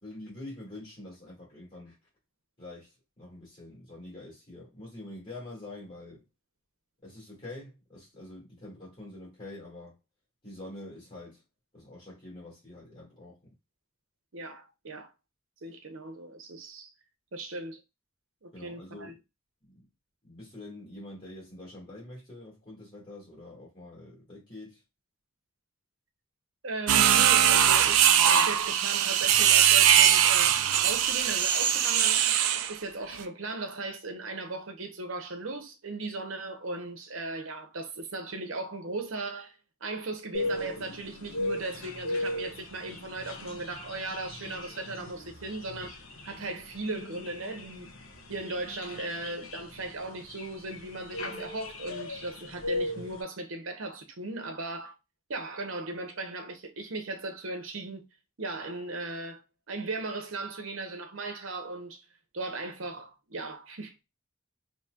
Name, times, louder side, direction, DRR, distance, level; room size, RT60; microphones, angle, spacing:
voice 1, 0.0-2.0 2.6-6.2 7.0-10.0 10.4-11.4 11.7-13.4 18.5-19.2 19.6-19.9 20.2-24.8, left 1 dB, 25° left, 2.2 m, -45 dB
voice 2, 14.3-15.1 15.6-16.9 17.3-17.8 18.4-19.2 26.6-32.2 32.7-45.9 46.2-47.9 48.3-55.0 55.3-58.1 58.4-59.4 59.7-62.0 62.3-64.0, right 2 dB, 70° right, 0.9 m, -37 dB
sound 1, 26.9-32.7, right 10 dB, 90° right, 0.4 m, -21 dB
sound 2, 40.3-53.2, left 2 dB, 70° left, 1.0 m, -37 dB
4.2 x 2.9 x 2.3 m
head